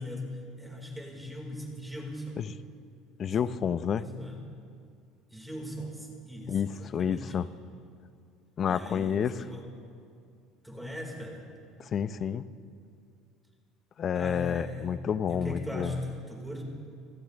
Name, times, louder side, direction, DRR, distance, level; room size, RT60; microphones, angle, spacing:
voice 1, 0.0-2.4 3.2-3.6 4.0-4.5 5.3-7.4 8.7-9.7 10.6-11.5 14.1-15.0 15.3-16.6, left 1 dB, 5° right, -1 dB, 4.7 m, -39 dB
voice 2, 3.2-4.0 6.5-7.5 8.6-9.3 11.9-12.5 14.0-15.9, left 8 dB, 45° left, 15 dB, 0.7 m, -29 dB
27.0 x 15.5 x 3.5 m, 2.4 s
supercardioid pair, 85°, 0 cm